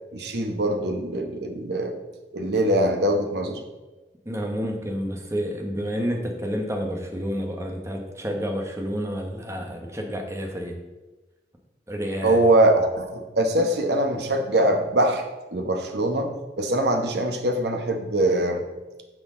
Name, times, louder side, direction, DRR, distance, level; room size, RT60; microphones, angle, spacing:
voice 1, 0.1-1.9 2.3-3.6 12.2-15.2 15.5-18.6, right 1 dB, 70° right, 4 dB, 1.0 m, -22 dB
voice 2, 4.2-10.7 11.9-12.4, equal, 15° right, 2 dB, 1.2 m, -29 dB
10.0 x 6.2 x 3.7 m, 1.2 s
head